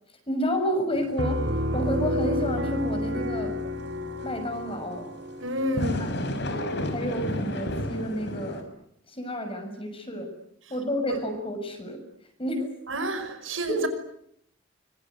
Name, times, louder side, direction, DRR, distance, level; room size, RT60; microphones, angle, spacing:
voice 1, 0.3-1.4 1.7-3.5 4.2-5.1 5.9-6.1 6.3-8.6 9.1-10.3 10.7-12.0 12.4-12.7 13.7-13.9, equal, 30° left, 6.6 m, -30 dB
sound 1, 0.9-4.3 5.6-8.6, left 1 dB, 60° left, 5.4 m, -32 dB
Piano, 1.2-6.7, left 1 dB, 65° right, 3.6 m, -30 dB
voice 2, 5.4-6.2 11.1-11.2 12.9-13.9, right 1 dB, 85° right, 5.7 m, -30 dB
25.5 x 23.5 x 9.6 m
head